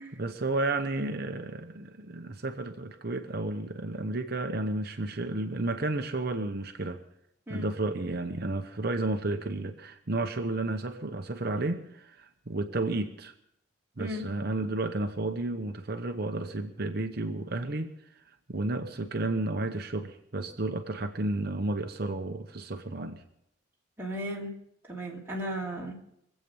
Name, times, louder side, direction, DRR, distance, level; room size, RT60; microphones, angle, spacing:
voice 1, 0.1-7.0 7.5-13.3 14.0-18.2 18.5-23.2, right 2 dB, 50° right, 6 dB, 0.9 m, -32 dB
voice 2, 14.0-14.3 24.0-24.6 24.9-26.0, equal, 10° right, -4 dB, 2.8 m, -35 dB
24.0 x 8.3 x 5.5 m, 0.76 s
head